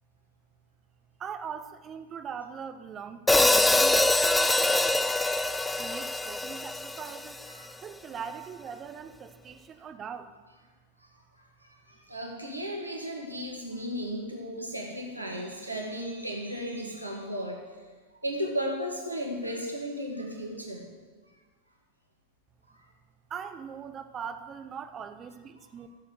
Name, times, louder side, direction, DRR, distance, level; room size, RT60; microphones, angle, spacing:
voice 1, 1.2-4.0 4.2-4.9 5.8-7.3 7.8-10.3 23.3-25.9, right 7 dB, 25° right, 8 dB, 1.0 m, -40 dB
Hi-hat, 3.3-7.5, left 2 dB, 5° left, 0.4 m, -24 dB
voice 2, 11.6-17.6 18.2-20.8, equal, 85° right, 1 dB, 1.9 m, -35 dB
14.5 x 7.6 x 6.6 m, 1.4 s
figure-of-eight pair, 90°, 0 cm